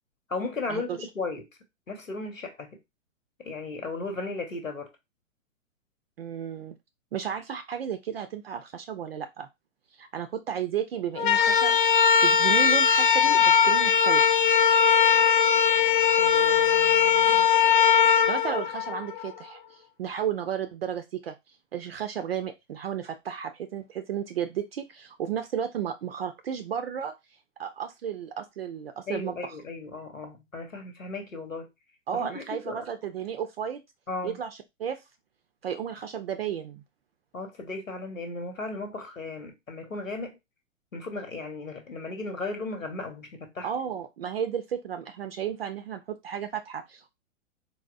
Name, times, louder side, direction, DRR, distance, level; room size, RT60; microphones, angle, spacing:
voice 1, 0.3-1.5 1.9-2.8 3.4-4.9 16.2-17.5 29.1-31.7 32.1-32.9 34.1-34.4 37.3-40.4 40.9-43.7, left 3 dB, 80° left, 1.0 m, -36 dB
voice 2, 6.2-6.8 7.1-9.5 10.0-14.4 18.3-21.3 21.7-27.1 27.6-29.4 32.1-33.8 34.2-35.0 35.6-36.8 43.6-47.1, right 8 dB, 50° right, 0.4 m, -33 dB
sound 1, 11.1-19.3, left 7 dB, 40° left, 0.4 m, -20 dB
4.0 x 2.0 x 2.4 m
figure-of-eight pair, 110°, 39 cm